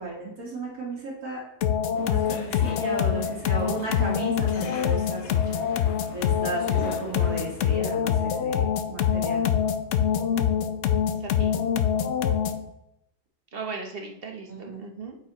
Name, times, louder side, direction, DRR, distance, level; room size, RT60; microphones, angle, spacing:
voice 1, 0.0-1.4 1.9-5.4 5.7-5.8 6.1-9.5 14.5-14.9, right 2 dB, 60° right, -4 dB, 2.0 m, -35 dB
sound 1, 1.6-12.7, left 8 dB, 75° left, 0.6 m, -25 dB
sound 2, 2.0-7.8, left 3 dB, 55° left, 1.0 m, -43 dB
voice 2, 11.2-11.6 13.5-15.2, right 4 dB, 45° right, 2 dB, 0.9 m, -37 dB
8.6 x 4.8 x 2.9 m, 0.86 s
omnidirectional pair, 1.7 m